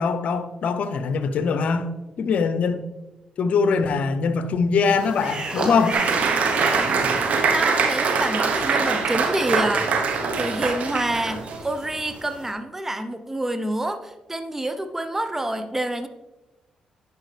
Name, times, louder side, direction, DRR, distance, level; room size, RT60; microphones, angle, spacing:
voice 1, 0.0-1.9 2.2-2.8 3.4-6.0, left 5 dB, 65° left, 0.7 m, -22 dB
sound 1, 4.9-12.5, right 2 dB, 40° right, 1.9 m, -35 dB
Applause, 5.9-11.6, right 5 dB, 70° right, 1.0 m, -23 dB
voice 2, 7.5-16.1, right 1 dB, 15° right, 0.7 m, -27 dB
10.5 x 5.2 x 3.3 m
supercardioid pair, 60°, 2 cm